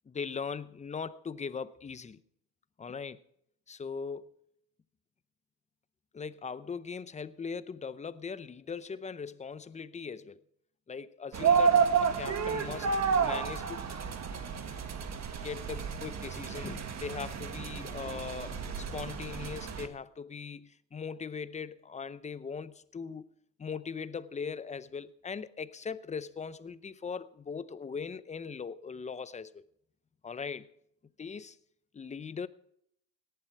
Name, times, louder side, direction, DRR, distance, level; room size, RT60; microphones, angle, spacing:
voice 1, 0.1-2.2 2.8-3.2 3.7-4.4 6.1-10.4 10.9-13.9 15.3-23.3 23.6-29.7 30.2-30.7 31.2-31.6 31.9-32.5, left 5 dB, 15° left, 0.6 m, -40 dB
sound 1, 11.3-19.9, right 6 dB, 35° right, 1.8 m, -30 dB
18.0 x 11.5 x 4.6 m
supercardioid pair, 105°, 48 cm